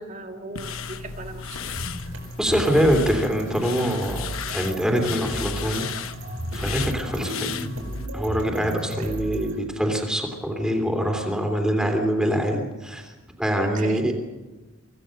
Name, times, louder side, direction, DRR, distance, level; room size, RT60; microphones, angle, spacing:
voice 1, 0.0-1.8 9.0-9.2 13.5-14.2, right 2 dB, 35° right, 4 dB, 2.0 m, -38 dB
sound 1, 0.6-8.1, left 6 dB, 80° left, 1.1 m, -35 dB
sound 2, 1.7-9.6, equal, 75° right, 4.9 m, -34 dB
voice 2, 2.4-5.9 6.5-7.5 8.1-13.0 13.4-14.1, equal, 5° right, 3 dB, 3.0 m, -24 dB
25.5 x 16.5 x 6.5 m, 1.2 s
head